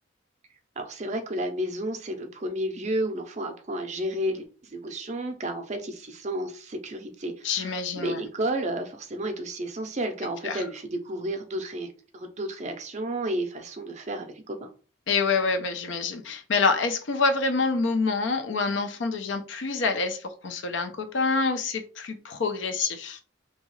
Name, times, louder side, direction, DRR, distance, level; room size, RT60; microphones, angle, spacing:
voice 1, 0.8-11.9 12.1-14.7, right 1 dB, 35° right, 0.5 m, -32 dB
voice 2, 7.4-8.2 10.4-10.6 15.1-23.2, left 4 dB, 70° left, 0.5 m, -27 dB
2.8 x 2.3 x 3.1 m
head